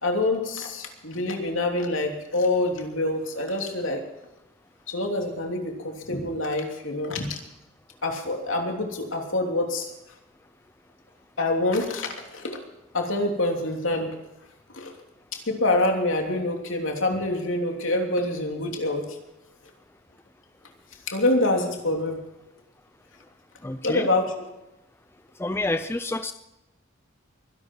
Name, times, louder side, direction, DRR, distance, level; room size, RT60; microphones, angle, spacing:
voice 1, 0.0-4.0 4.9-7.4 8.0-9.9 11.4-12.6 12.9-14.2 14.7-14.9 15.3-19.2 21.1-22.2 23.8-24.3, left 2 dB, 70° left, 2 dB, 3.0 m, -26 dB
voice 2, 23.6-24.1 25.4-26.3, left 2 dB, 10° left, 10 dB, 0.4 m, -28 dB
23.0 x 11.5 x 4.6 m, 0.92 s
head